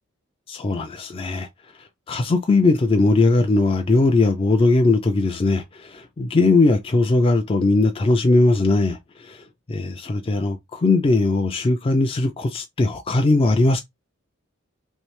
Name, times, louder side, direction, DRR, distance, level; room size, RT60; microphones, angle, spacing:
voice 1, 0.5-1.5 1.8-13.8, left 2 dB, 25° left, 0.3 m, -19 dB
3.2 x 2.7 x 3.0 m
head